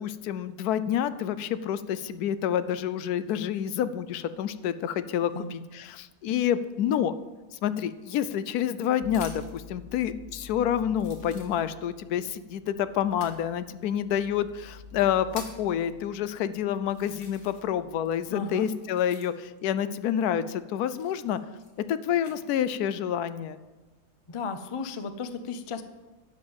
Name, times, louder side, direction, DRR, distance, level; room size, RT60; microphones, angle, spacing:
voice 1, 0.0-7.1 7.6-21.4 21.9-23.6, left 9 dB, 90° left, 14 dB, 1.1 m, -28 dB
sound 1, 8.0-9.7 10.4-10.5 10.9-12.0 13.1-13.4 14.3-14.4 14.9-15.7 16.4-16.5 16.9-17.8 18.1-19.6 20.8-22.4 23.0-23.5, left 3 dB, 65° left, 2.0 m, -48 dB
sound 2, 9.0-18.6, left 4 dB, 45° right, 1.2 m, -50 dB
voice 2, 18.3-18.7 24.3-25.8, left 4 dB, 45° left, 10 dB, 0.4 m, -34 dB
11.5 x 5.3 x 7.8 m, 1.2 s
omnidirectional pair, 1.6 m